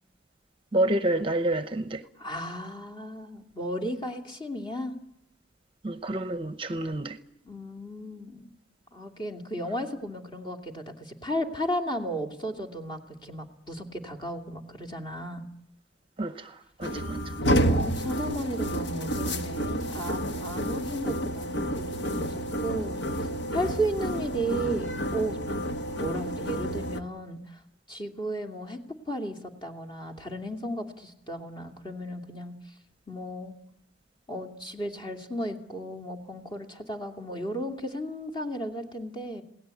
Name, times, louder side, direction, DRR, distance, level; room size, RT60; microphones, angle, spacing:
voice 1, 0.7-2.0 5.8-7.2 16.2-17.3, right 1 dB, 30° right, 0.8 m, -29 dB
voice 2, 2.2-5.0 7.4-8.5 8.9-15.5 17.6-23.3 23.5-25.4 26.0-27.6 27.9-28.8 29.1-32.5 33.1-33.5 34.3-39.4, equal, 25° left, 2.6 m, -34 dB
sound 1, 16.8-27.0, equal, 80° left, 1.6 m, -30 dB
27.5 x 18.0 x 8.4 m
head